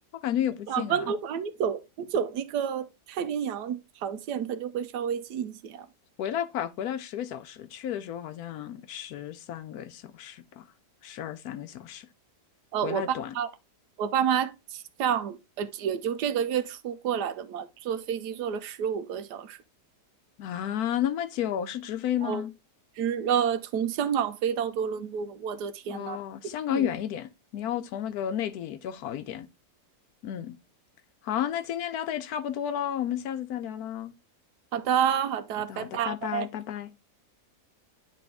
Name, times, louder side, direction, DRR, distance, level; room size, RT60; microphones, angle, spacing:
voice 1, 0.1-1.1 6.2-10.6 11.0-12.1 12.8-13.3 20.4-22.5 25.9-29.5 30.2-30.5 31.2-34.1 35.6-36.9, left 10 dB, 70° left, 1.0 m, -32 dB
voice 2, 0.7-5.9 12.7-13.1 13.4-13.5 14.0-14.5 15.0-19.6 22.2-22.4 23.0-26.2 26.7-26.9 34.7-36.5, right 8 dB, 80° right, 1.2 m, -29 dB
9.9 x 3.4 x 3.4 m
omnidirectional pair, 1.8 m